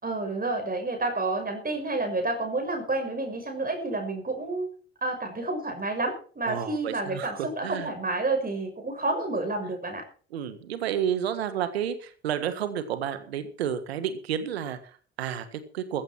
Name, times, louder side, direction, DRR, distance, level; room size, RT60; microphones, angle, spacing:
voice 1, 0.0-4.7 5.0-10.0, right 2 dB, 30° right, 4 dB, 6.3 m, -29 dB
voice 2, 6.4-7.9 10.3-16.0, right 9 dB, 90° right, 11 dB, 1.6 m, -31 dB
15.0 x 14.5 x 4.6 m, 0.41 s
hypercardioid pair, 50°, 31 cm